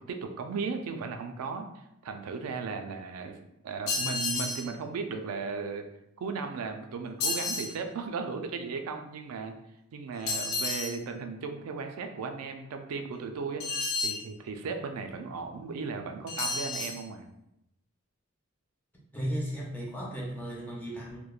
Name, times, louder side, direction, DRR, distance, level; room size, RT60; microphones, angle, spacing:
voice 1, 0.0-3.4 3.6-5.9 6.2-9.5 9.9-13.6 14.0-17.3, right 4 dB, 85° right, 6 dB, 0.3 m, -36 dB
sound 1, 3.9-4.7 7.2-7.7 10.3-11.0 13.6-14.2 16.3-17.0, left 3 dB, 70° left, 0.5 m, -31 dB
voice 2, 19.1-21.2, equal, 10° left, -4 dB, 0.5 m, -35 dB
3.0 x 2.1 x 2.3 m, 0.83 s
head